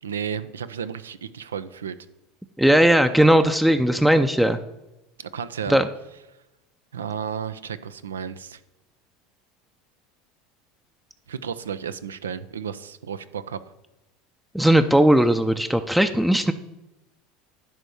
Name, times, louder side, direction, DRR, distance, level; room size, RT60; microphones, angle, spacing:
voice 1, 0.0-2.0 5.2-5.8 6.9-8.6 11.3-13.6, right 7 dB, 85° right, 13 dB, 0.5 m, -33 dB
voice 2, 2.6-4.6 5.7-5.9 14.5-16.5, right 1 dB, 5° right, 8 dB, 0.5 m, -18 dB
10.5 x 3.5 x 6.9 m, 0.97 s
hypercardioid pair, 80°, 0 cm